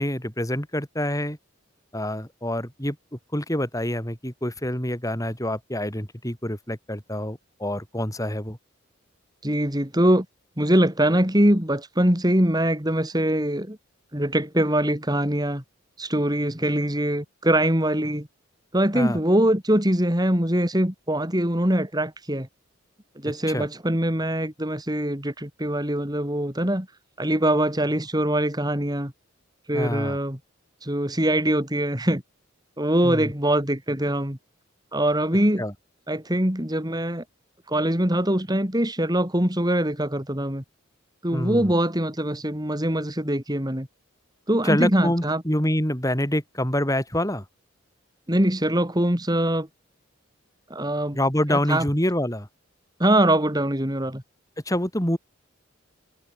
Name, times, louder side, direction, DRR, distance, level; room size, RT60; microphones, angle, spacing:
voice 1, 0.0-1.4 1.9-3.0 3.3-8.6 18.9-19.2 23.5-23.7 29.7-30.2 33.0-33.3 35.6-35.7 41.3-41.7 44.6-47.4 51.1-52.5 54.7-55.2, left 1 dB, 15° left, 7.2 m, -26 dB
voice 2, 9.4-10.3 10.6-13.8 14.1-15.6 16.0-18.3 18.7-22.5 23.2-26.9 27.2-29.1 29.7-30.4 30.8-32.2 32.8-34.4 34.9-35.6 36.1-37.2 37.7-40.6 41.2-43.9 44.5-45.4 48.3-49.7 50.7-51.2 51.5-51.8 53.0-54.2, right 1 dB, 20° right, 3.5 m, -23 dB
head